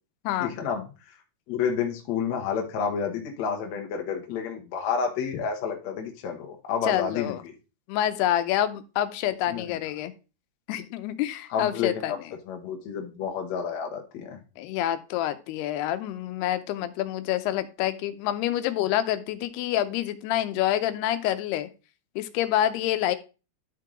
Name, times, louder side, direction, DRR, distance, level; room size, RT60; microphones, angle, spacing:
voice 1, 0.4-0.9 1.5-7.4 9.5-9.8 11.5-12.2 12.5-14.4, left 6 dB, 60° left, 2 dB, 2.0 m, -30 dB
voice 2, 6.8-7.4 7.9-10.1 10.7-12.1 14.6-21.7 22.2-23.2, left 12 dB, 90° left, 10 dB, 2.8 m, -27 dB
12.0 x 4.7 x 3.8 m, 0.32 s
omnidirectional pair, 4.5 m